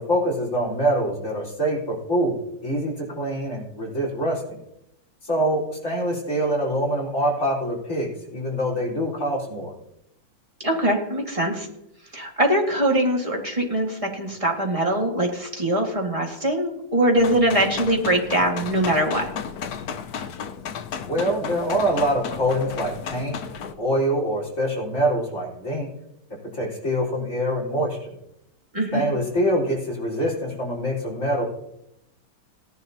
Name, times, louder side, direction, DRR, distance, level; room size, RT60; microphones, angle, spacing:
voice 1, 0.0-4.6 5.2-9.7 21.1-23.4 23.8-25.9 26.5-28.0 28.9-31.4, equal, 40° left, -4 dB, 4.6 m, -25 dB
voice 2, 10.6-11.7 12.1-19.3 28.7-29.0, right 1 dB, 20° right, -1 dB, 1.9 m, -22 dB
sound 1, 17.1-23.7, left 7 dB, 65° left, 1.1 m, -34 dB
18.0 x 11.0 x 2.8 m, 0.81 s
omnidirectional pair, 2.1 m